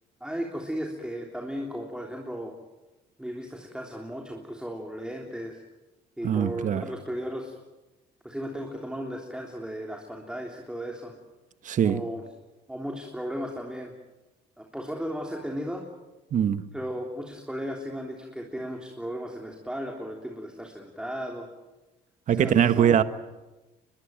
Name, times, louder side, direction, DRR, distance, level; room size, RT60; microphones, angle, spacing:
voice 1, 0.2-2.5 3.2-5.6 6.2-7.6 8.2-11.1 11.8-12.2 12.7-13.9 14.6-15.9 16.7-21.5 22.3-23.0, equal, 5° right, 3.4 m, -35 dB
voice 2, 6.2-6.8 11.6-12.0 16.3-16.6 22.3-23.0, right 9 dB, 50° right, 1.3 m, -22 dB
23.5 x 22.0 x 9.2 m
cardioid pair, 110°, 17 cm